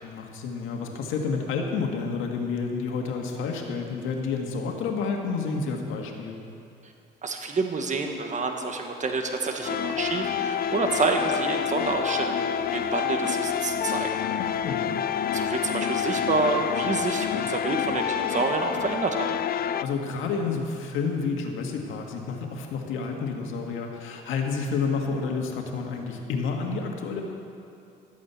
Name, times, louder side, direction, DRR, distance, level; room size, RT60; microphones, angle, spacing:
voice 1, 0.0-6.4 14.4-14.8 19.8-27.2, left 5 dB, 90° left, 2 dB, 1.8 m, -30 dB
voice 2, 7.2-14.2 15.3-19.3, right 3 dB, 40° right, 3 dB, 1.5 m, -28 dB
sound 1, 9.6-19.8, left 9 dB, 50° left, 0.5 m, -28 dB
13.5 x 8.8 x 8.2 m, 2.7 s
cardioid pair, 90°, 20 cm